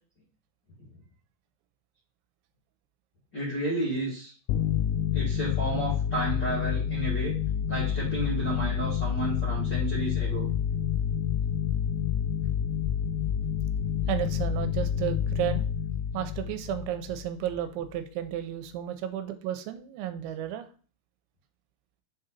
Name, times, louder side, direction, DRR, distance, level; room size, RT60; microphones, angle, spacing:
voice 1, 3.3-4.3 5.1-7.3 7.7-10.5, right 1 dB, 45° left, -8 dB, 1.4 m, -32 dB
sound 1, 4.5-17.7, left 8 dB, 85° left, 2.9 m, -28 dB
voice 2, 14.1-15.6 16.1-20.7, right 11 dB, 90° right, 8 dB, 3.1 m, -33 dB
7.8 x 3.9 x 4.1 m, 0.40 s
omnidirectional pair, 5.3 m